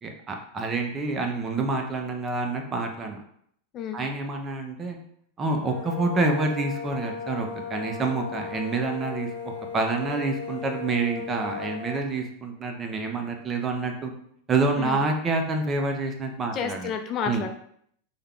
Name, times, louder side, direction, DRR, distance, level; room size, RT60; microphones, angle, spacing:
voice 1, 0.0-3.2 3.9-5.0 5.4-9.3 9.7-14.1 14.5-16.9 17.3-17.5, right 3 dB, 20° right, 3 dB, 0.5 m, -27 dB
sound 1, 5.5-12.1, left 6 dB, 75° left, 0.8 m, -36 dB
voice 2, 16.5-17.5, left 7 dB, 35° left, 6 dB, 0.4 m, -30 dB
3.5 x 2.2 x 3.6 m, 0.68 s
supercardioid pair, 135°, 0 cm